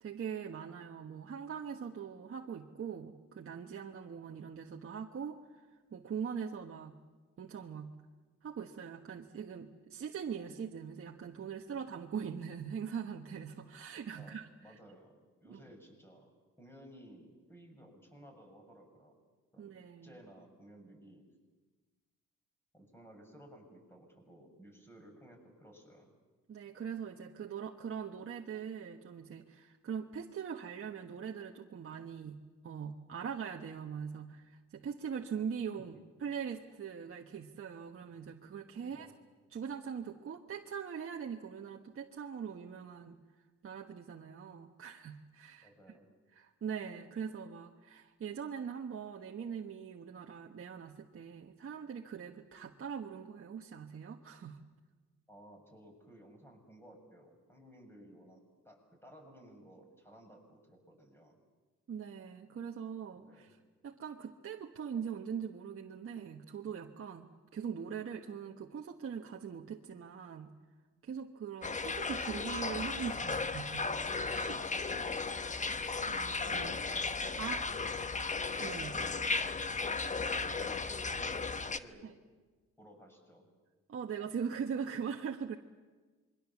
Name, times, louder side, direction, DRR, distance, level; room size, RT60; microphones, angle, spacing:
voice 1, 0.0-7.0 7.4-7.9 8.4-14.8 15.5-15.6 19.6-20.2 26.5-39.1 39.5-46.0 46.3-54.6 61.9-63.6 63.8-70.5 71.0-75.1 75.7-77.7 78.6-79.0 82.0-82.1 83.9-85.6, right 7 dB, 45° right, 1 dB, 1.3 m, -42 dB
voice 2, 14.6-15.1 15.4-16.3 16.6-19.1 19.5-19.7 20.0-21.3 22.7-26.1 38.8-39.1 45.6-46.1 55.3-61.4 63.1-63.5 74.8-75.4 77.4-77.8 78.9-79.2 80.2-82.1 82.8-83.5, equal, 10° left, 3 dB, 6.9 m, -56 dB
sound 1, 71.6-81.8, left 4 dB, 25° left, 1.0 m, -35 dB
26.5 x 23.0 x 7.2 m, 1.3 s
cardioid pair, 90°, 30 cm